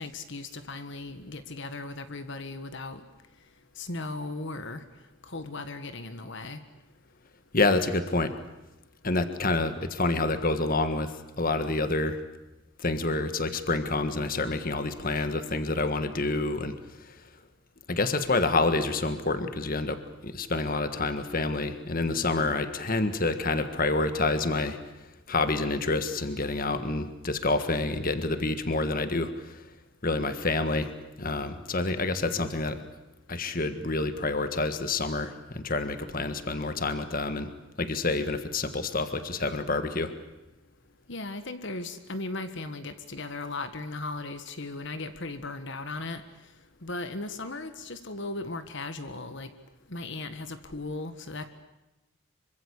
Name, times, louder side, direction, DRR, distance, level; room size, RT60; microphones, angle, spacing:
voice 1, 0.0-3.0 3.8-4.8 5.2-6.6 41.1-46.2 46.8-49.5 49.9-51.5, left 2 dB, 55° left, 10 dB, 1.6 m, -37 dB
voice 2, 7.5-8.3 9.0-12.2 12.8-16.8 17.0-17.1 17.9-24.8 25.3-29.6 30.0-32.8 33.3-37.5 37.8-40.1, left 2 dB, 40° left, 10 dB, 1.6 m, -28 dB
26.0 x 24.5 x 8.3 m, 1.0 s
head